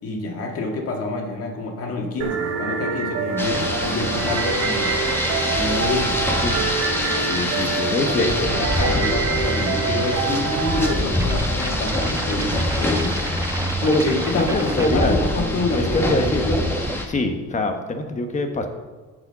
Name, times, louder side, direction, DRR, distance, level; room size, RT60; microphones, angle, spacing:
voice 1, 0.0-4.9 5.5-6.2 8.0-13.1 13.8-16.7, left 2 dB, 50° left, 1 dB, 2.0 m, -26 dB
sound 1, 2.2-10.9, right 5 dB, 65° right, 1.1 m, -26 dB
Rain, 3.4-17.0, left 1 dB, 10° left, 1.4 m, -25 dB
voice 2, 7.2-8.5 13.9-15.2 15.8-16.4 17.1-18.7, left 2 dB, 25° left, 5 dB, 1.2 m, -24 dB
sound 2, 11.1-17.0, right 3 dB, 10° right, 0.4 m, -31 dB
8.1 x 5.1 x 6.8 m, 1.4 s
cardioid pair, 120°, 29 cm